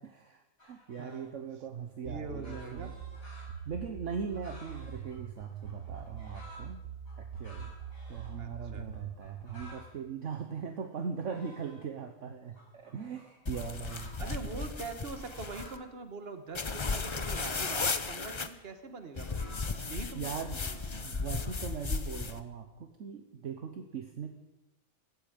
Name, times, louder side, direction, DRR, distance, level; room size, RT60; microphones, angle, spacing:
voice 1, 0.0-2.9 3.6-6.8 7.2-7.7 8.1-14.6 20.1-20.6 21.0-24.3, right 6 dB, 60° right, 6 dB, 1.3 m, -40 dB
sound 1, 0.6-1.3 2.0-6.7 7.1-8.3 8.6-8.7 8.9-9.9 10.3-12.0 12.5-15.8 16.2-17.9 18.3-19.7, left 1 dB, 65° left, 5.8 m, -54 dB
voice 2, 2.0-2.9 8.4-8.9 14.2-19.6 19.9-20.3 20.6-21.1, right 4 dB, 45° right, 8 dB, 1.6 m, -43 dB
sound 2, 2.1-9.7, right 7 dB, 75° right, 1.4 m, -43 dB
sound 3, 13.5-15.8 16.5-18.5 19.2-22.4, left 4 dB, 35° left, 0.5 m, -35 dB
16.0 x 14.0 x 5.2 m, 0.97 s
omnidirectional pair, 1.5 m